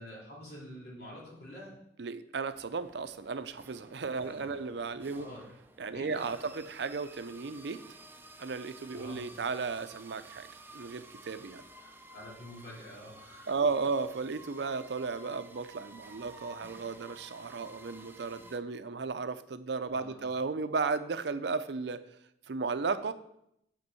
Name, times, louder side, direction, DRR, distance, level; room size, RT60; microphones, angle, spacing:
voice 1, 0.0-1.8 4.1-4.6 5.1-5.4 5.9-6.4 8.9-9.3 11.8-13.6 19.9-20.2, left 1 dB, 60° left, -5 dB, 3.4 m, -48 dB
voice 2, 2.0-5.3 5.8-7.8 8.4-10.5 10.7-11.6 13.5-22.0 22.5-23.1, right 4 dB, 70° right, 11 dB, 0.5 m, -34 dB
sound 1, 2.5-18.6, right 2 dB, 10° right, 0.5 m, -53 dB
8.0 x 5.2 x 6.9 m, 0.77 s
head